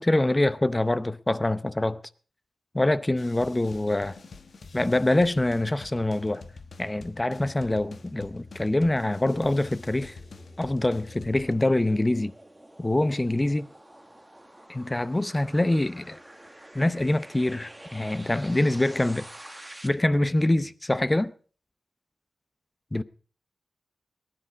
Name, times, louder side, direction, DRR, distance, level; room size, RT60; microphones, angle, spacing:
voice 1, 0.0-2.0 2.7-4.2 4.7-6.5 6.8-10.1 10.6-12.3 12.8-13.7 14.7-16.2 16.7-19.3 19.8-21.3 22.9-23.0, left 1 dB, 20° left, 0.7 m, -25 dB
sound 1, 3.2-11.5, left 3 dB, 70° left, 1.3 m, -46 dB
sound 2, 6.7-19.9, right 1 dB, 10° right, 1.4 m, -49 dB
19.5 x 10.5 x 4.6 m
wide cardioid pair, 100°, 0 cm